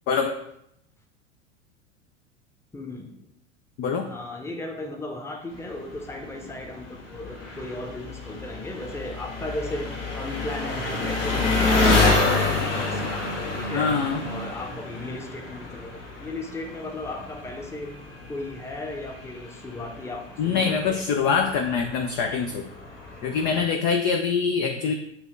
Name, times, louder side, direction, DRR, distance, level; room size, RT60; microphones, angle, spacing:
voice 1, 2.7-3.3 4.0-13.3 13.5-18.0 18.3-21.2, left 2 dB, 5° left, 3 dB, 0.8 m, -36 dB
Engine, 5.5-23.7, left 3 dB, 70° left, 1.4 m, -29 dB
voice 2, 13.7-14.2 20.4-22.7 23.2-24.9, left 5 dB, 25° left, 4 dB, 0.3 m, -24 dB
8.5 x 2.9 x 4.4 m, 0.76 s
figure-of-eight pair, 85°, 38 cm